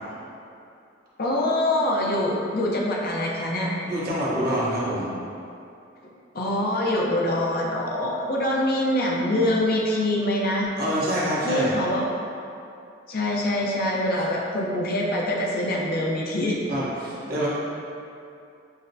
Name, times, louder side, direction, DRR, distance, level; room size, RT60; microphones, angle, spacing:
voice 1, 1.2-3.7 6.3-10.7 11.4-12.1 13.1-16.6, left 1 dB, 50° left, -2 dB, 0.5 m, -24 dB
voice 2, 3.9-5.1 10.8-11.8 16.7-17.5, equal, 50° right, -8 dB, 0.9 m, -26 dB
6.2 x 2.1 x 2.6 m, 2.6 s
head